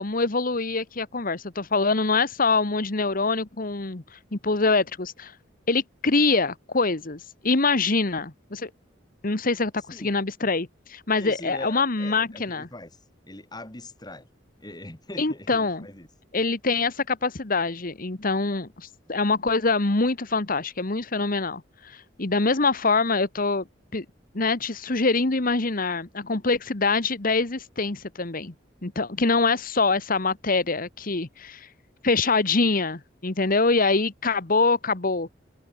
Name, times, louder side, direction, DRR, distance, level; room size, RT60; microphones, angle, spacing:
voice 1, 0.0-4.0 4.3-5.3 5.7-8.7 9.2-12.7 15.2-15.9 16.3-23.7 23.9-24.0 24.3-28.5 28.8-31.7 32.0-35.3, left 3 dB, 50° left, 1.5 m, -24 dB
voice 2, 11.2-12.9 13.3-14.3 14.6-16.1, left 1 dB, 20° left, 3.7 m, -41 dB
head